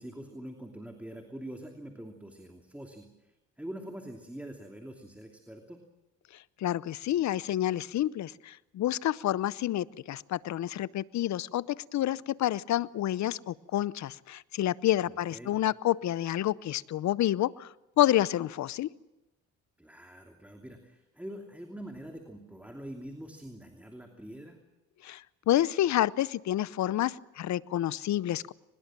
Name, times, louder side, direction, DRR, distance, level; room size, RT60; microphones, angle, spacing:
voice 1, 0.0-5.8 15.0-15.6 19.8-24.6, right 1 dB, 5° right, 3 dB, 2.8 m, -44 dB
voice 2, 6.6-17.7 18.0-18.9 25.0-25.2 25.5-28.5, left 13 dB, 65° left, 20 dB, 0.7 m, -29 dB
23.0 x 21.0 x 7.5 m, 0.99 s
cardioid pair, 90°, 30 cm